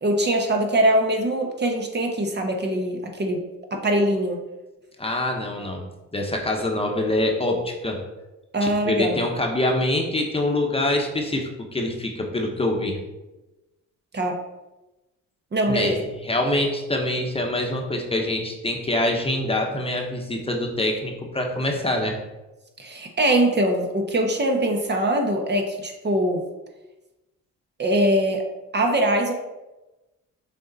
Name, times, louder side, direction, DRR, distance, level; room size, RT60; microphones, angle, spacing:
voice 1, 0.0-3.4 3.7-4.4 8.5-9.2 14.1-14.3 15.5-15.9 22.8-26.4 27.8-28.4 28.7-29.3, right 1 dB, 35° right, 2 dB, 1.1 m, -22 dB
voice 2, 5.0-5.8 6.1-8.0 8.6-13.0 15.7-22.1, left 1 dB, 20° left, 1 dB, 1.0 m, -25 dB
6.5 x 4.0 x 4.1 m, 1.0 s
cardioid pair, 90°, 30 cm